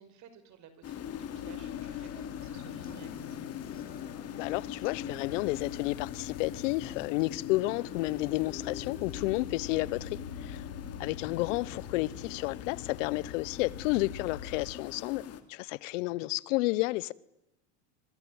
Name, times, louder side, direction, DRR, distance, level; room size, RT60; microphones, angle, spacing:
voice 1, 0.0-3.5 10.7-11.0, right 8 dB, 45° right, 5.8 m, -55 dB
sound 1, 0.8-15.4, left 9 dB, 40° left, 2.9 m, -42 dB
sound 2, 1.0-14.7, left 7 dB, 85° left, 4.7 m, -46 dB
sound 3, 1.7-9.7, left 5 dB, 25° left, 3.2 m, -56 dB
voice 2, 4.4-10.6 11.0-15.2 15.5-17.1, left 20 dB, 70° left, 1.2 m, -31 dB
26.5 x 25.0 x 9.0 m
supercardioid pair, 110°, 38 cm